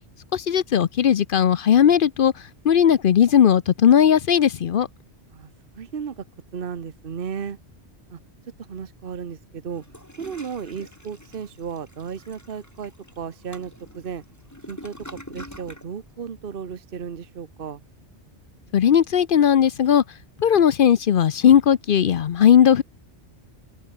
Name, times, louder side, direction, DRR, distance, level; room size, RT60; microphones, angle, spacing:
voice 1, 0.3-4.9 18.7-20.0 20.4-22.8, left 9 dB, 55° left, 0.7 m, -17 dB
voice 2, 5.3-6.2 6.5-7.6 8.1-8.2 8.6-9.8 10.2-14.2 14.7-17.8, right 7 dB, 55° right, 1.2 m, -34 dB
Toilet flush, 9.7-15.9, left 1 dB, 15° left, 4.7 m, -44 dB
open air
omnidirectional pair, 1.2 m